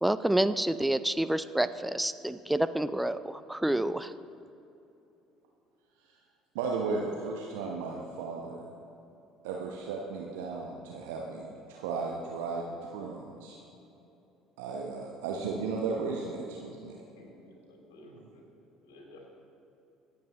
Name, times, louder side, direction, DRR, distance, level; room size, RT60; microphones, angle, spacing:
voice 1, 0.0-4.1, right 1 dB, 5° right, 13 dB, 0.4 m, -28 dB
voice 2, 6.5-8.6 9.4-13.6 14.6-17.0 18.1-18.3, right 4 dB, 70° right, -1 dB, 1.0 m, -35 dB
voice 3, 17.1-18.4 18.8-19.3, left 1 dB, 70° left, -1 dB, 2.9 m, -53 dB
24.0 x 8.5 x 3.0 m, 2.9 s
figure-of-eight pair, 55°, 0 cm